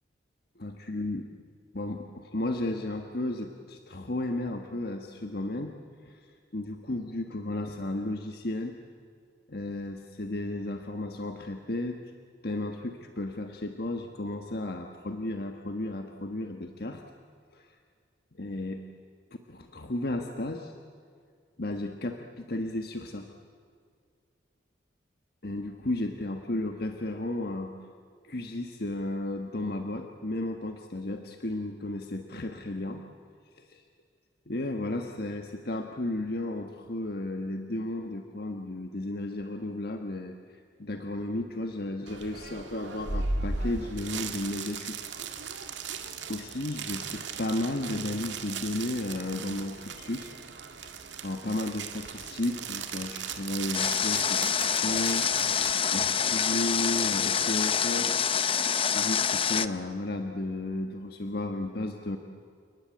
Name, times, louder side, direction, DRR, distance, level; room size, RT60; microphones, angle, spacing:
voice 1, 0.6-1.3 1.7-5.7 6.0-8.8 9.5-12.0 12.4-17.0 17.5-17.7 18.4-18.8 19.5-20.7 21.6-23.3 25.4-27.7 28.2-33.0 33.6-33.8 34.5-40.3 40.8-45.0 45.3-45.4 46.3-50.3 50.8-50.9 51.2-58.3 58.9-62.2, left 1 dB, 55° left, 4 dB, 1.5 m, -34 dB
sound 1, 42.1-55.8, right 4 dB, 75° right, 2.1 m, -37 dB
Water, 53.7-59.7, left 7 dB, 30° left, 0.7 m, -26 dB
30.0 x 20.0 x 8.6 m, 2.1 s
head